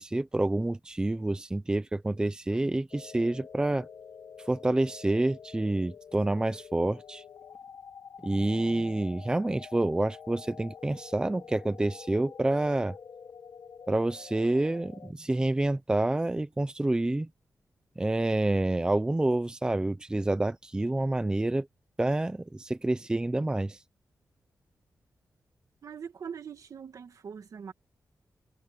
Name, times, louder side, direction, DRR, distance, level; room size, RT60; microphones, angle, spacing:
voice 1, 0.0-3.9 4.5-7.2 8.2-12.9 13.9-17.3 18.0-21.7 22.0-23.8, right 2 dB, 15° right, 0.7 m, -28 dB
sound 1, 2.9-15.1, left 6 dB, 60° left, 1.5 m, -48 dB
voice 2, 25.8-27.7, right 7 dB, 65° right, 2.0 m, -42 dB
wide cardioid pair, 155°, 6 cm